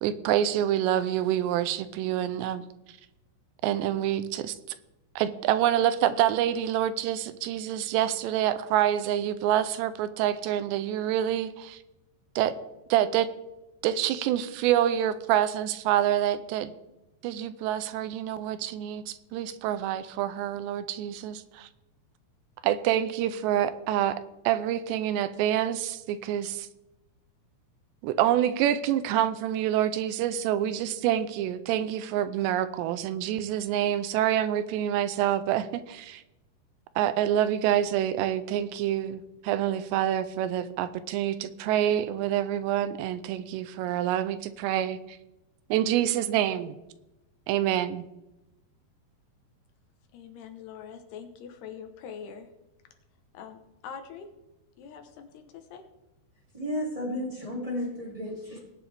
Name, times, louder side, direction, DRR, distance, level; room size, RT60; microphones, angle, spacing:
voice 1, 0.0-3.0 3.6-4.6 5.2-11.8 12.4-12.5 12.9-13.3 13.8-16.7 17.2-21.7 22.6-26.7 28.0-36.2 37.0-45.2 45.7-46.8 47.5-48.1, right 11 dB, 85° right, 13 dB, 2.8 m, -27 dB
voice 2, 50.1-52.5 53.3-54.3 54.8-55.8, left 7 dB, 75° left, 6 dB, 2.9 m, -43 dB
voice 3, 56.5-58.6, left 1 dB, 10° right, -2 dB, 1.6 m, -33 dB
18.5 x 10.0 x 3.5 m, 0.96 s
omnidirectional pair, 5.0 m